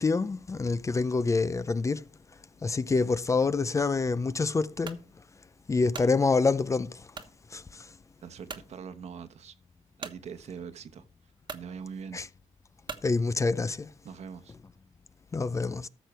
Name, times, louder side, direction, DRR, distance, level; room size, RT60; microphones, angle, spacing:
voice 1, 0.0-2.0 2.6-5.0 5.7-7.0 7.5-7.8 12.1-12.2 13.0-13.9 15.3-15.9, left 4 dB, 25° left, 0.5 m, -26 dB
sound 1, 4.8-5.1 5.6-6.1 7.1-7.4 7.9-8.0 8.5-8.7 10.0-10.2 11.0-11.1 11.4-11.7 12.8-13.1, right 5 dB, 40° right, 1.2 m, -41 dB
voice 2, 8.2-9.5 10.0-11.0 11.5-12.2 14.0-14.5, right 6 dB, 65° right, 1.1 m, -42 dB
13.5 x 6.7 x 4.5 m
cardioid pair, 120°, 12 cm